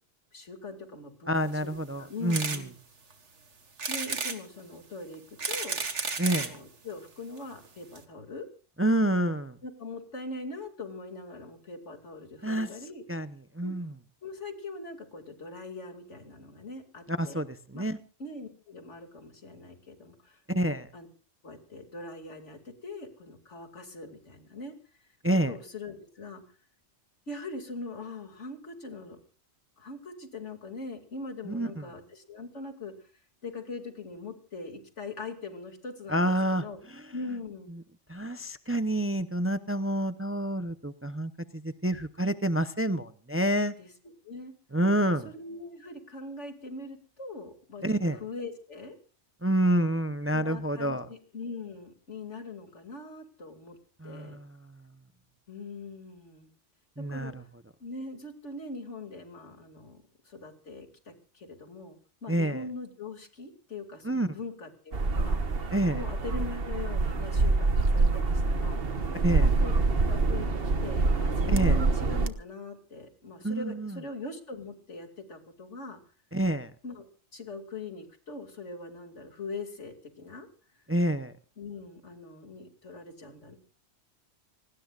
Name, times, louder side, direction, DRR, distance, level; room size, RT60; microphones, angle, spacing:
voice 1, 0.3-1.7 2.0-2.7 3.9-5.2 5.5-5.8 6.2-8.5 9.6-13.0 13.6-13.8 14.2-17.4 17.7-17.9 18.2-21.1 21.4-24.7 25.5-26.4 27.3-29.2 29.8-32.9 33.4-36.8 37.1-37.7 43.8-43.9 44.2-44.5 45.2-49.0 50.3-53.8 54.0-54.4 55.5-56.5 57.1-57.3 57.8-65.6 65.9-69.0 69.4-69.7 70.1-76.0 76.8-80.5 81.6-83.6, left 3 dB, 85° left, 5 dB, 2.9 m, -42 dB
voice 2, 1.3-2.6 6.2-6.5 8.8-9.6 12.4-12.7 13.1-13.3 13.5-13.9 17.1-18.0 20.5-20.9 25.2-25.5 31.5-31.8 36.1-36.6 38.1-43.7 44.7-45.3 47.8-48.2 49.4-51.1 54.0-54.5 57.0-57.3 62.3-62.6 64.0-64.3 65.7-66.0 69.2-69.5 71.5-71.8 73.4-74.0 76.3-76.7 80.9-81.3, right 1 dB, 15° right, 11 dB, 0.6 m, -28 dB
sound 1, 2.3-2.6 3.1-3.2 3.8-4.4 5.1-6.6 7.4-7.5 7.7-7.8 8.0-8.1, right 4 dB, 85° right, 2.1 m, -32 dB
sound 2, 64.9-72.3, right 3 dB, 55° right, 1.4 m, -26 dB
27.0 x 19.0 x 2.5 m, 0.37 s
omnidirectional pair, 1.2 m